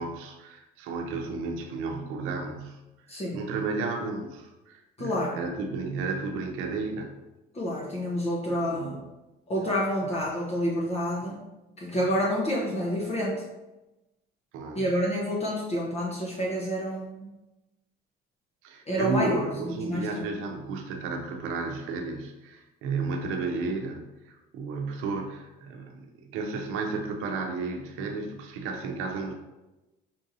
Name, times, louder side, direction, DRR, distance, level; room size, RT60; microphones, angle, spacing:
voice 1, 0.0-2.8 3.3-7.1 8.5-9.0 10.0-10.1 11.9-12.0 14.5-14.9 18.6-29.3, right 3 dB, 80° right, 3 dB, 0.7 m, -33 dB
voice 2, 3.1-3.4 5.0-5.4 7.5-9.0 9.5-11.4 11.8-13.4 14.7-17.3 18.9-20.3, equal, 30° left, -4 dB, 0.9 m, -29 dB
5.6 x 2.7 x 2.6 m, 1.0 s
cardioid pair, 95°, 21 cm